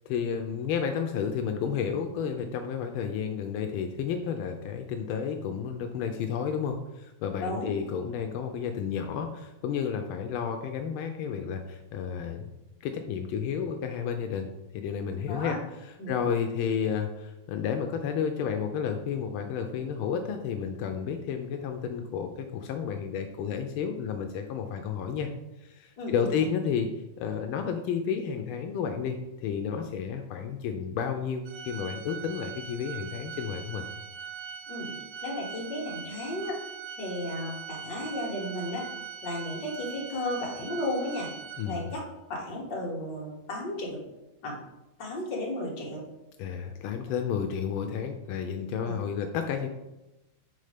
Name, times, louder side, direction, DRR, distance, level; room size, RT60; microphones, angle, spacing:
voice 1, 0.1-12.5 12.8-14.5 14.7-15.6 16.1-25.3 25.6-26.9 27.2-33.8 41.6-41.9 46.4-49.7, left 7 dB, 90° left, 5 dB, 1.4 m, -31 dB
voice 2, 7.4-7.7 15.3-15.6 16.0-16.1 26.0-26.3 34.7-34.9 35.2-36.6 37.0-38.8 39.2-41.3 41.7-42.0 42.3-44.0 44.4-44.6 45.0-46.0 48.8-48.9, left 1 dB, 60° left, -2 dB, 2.0 m, -34 dB
Organ, 31.5-42.1, right 7 dB, 85° right, 0.7 m, -41 dB
5.4 x 3.9 x 4.9 m, 0.99 s
omnidirectional pair, 2.3 m